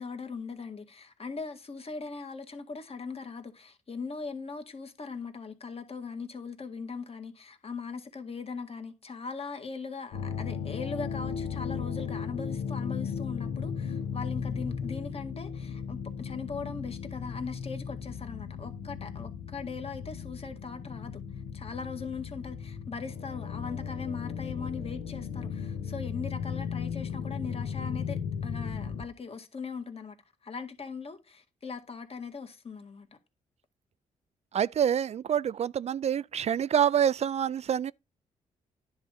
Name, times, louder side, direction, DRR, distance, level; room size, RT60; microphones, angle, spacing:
voice 1, 0.0-21.2 21.5-30.2 30.4-33.1, left 4 dB, 40° left, 1.9 m, -40 dB
sound 1, 10.1-29.0, left 6 dB, 80° left, 1.3 m, -36 dB
voice 2, 34.5-37.9, right 9 dB, 50° right, 0.4 m, -26 dB
10.0 x 3.6 x 6.5 m
supercardioid pair, 60°, 15 cm